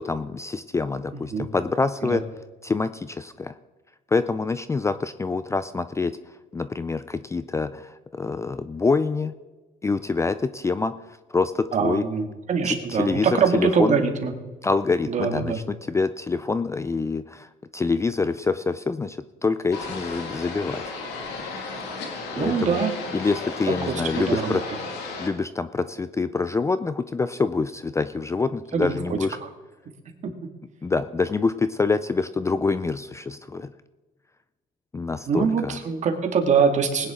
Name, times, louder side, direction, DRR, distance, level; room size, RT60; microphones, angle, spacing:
voice 1, 0.0-2.2 2.6-3.6 4.1-6.2 6.5-9.3 9.8-10.9 11.3-12.0 12.6-13.3 13.5-14.0 14.6-20.8 22.4-22.8 23.1-24.6 25.2-29.4 30.8-33.7 34.9-35.8, left 4 dB, 15° left, 13 dB, 0.4 m, -26 dB
voice 2, 1.1-1.5 2.0-2.2 11.7-14.3 15.1-15.6 22.3-23.0 23.7-24.6 28.7-28.9 29.4-29.5 35.3-37.1, right 6 dB, 45° right, 3 dB, 2.1 m, -23 dB
sound 1, 19.7-25.3, left 3 dB, 85° left, 2.1 m, -34 dB
19.5 x 10.0 x 3.7 m, 1.2 s
cardioid pair, 110°, 17 cm